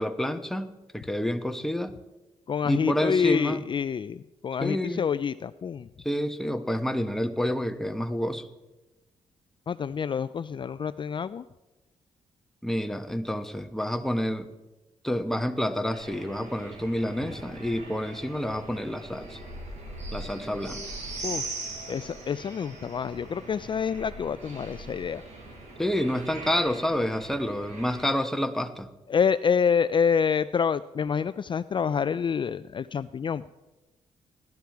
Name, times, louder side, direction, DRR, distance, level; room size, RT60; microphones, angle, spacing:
voice 1, 0.0-1.9 2.6-3.6 4.6-5.0 6.0-8.5 12.6-14.5 15.0-19.4 20.1-20.8 25.8-28.9, equal, 5° left, 7 dB, 1.1 m, -28 dB
voice 2, 2.5-5.9 9.7-11.4 21.2-21.5 21.9-25.2 29.1-33.5, left 6 dB, 40° left, 14 dB, 0.4 m, -27 dB
sound 1, 15.9-28.1, right 2 dB, 70° right, 5.2 m, -41 dB
17.0 x 12.0 x 4.7 m, 1.1 s
cardioid pair, 70°, 12 cm